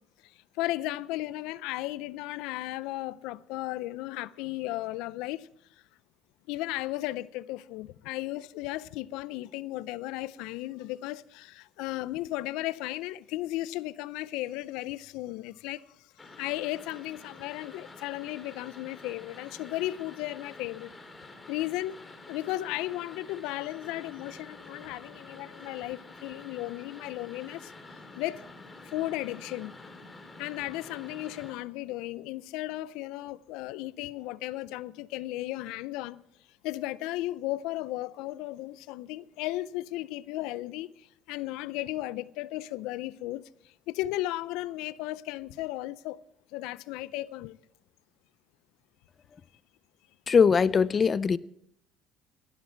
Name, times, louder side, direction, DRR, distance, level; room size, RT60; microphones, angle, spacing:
voice 1, 0.2-5.5 6.5-15.8 16.4-20.9 21.5-22.0 22.3-27.7 28.1-28.4 28.9-29.8 30.4-36.2 36.6-46.2 46.5-47.6, left 16 dB, 85° left, 0.4 m, -35 dB
sound 1, 16.2-31.5, left 2 dB, 15° left, 2.5 m, -49 dB
voice 2, 50.3-51.4, left 6 dB, 30° left, 0.4 m, -21 dB
17.5 x 11.5 x 4.5 m
cardioid pair, 110°, 0 cm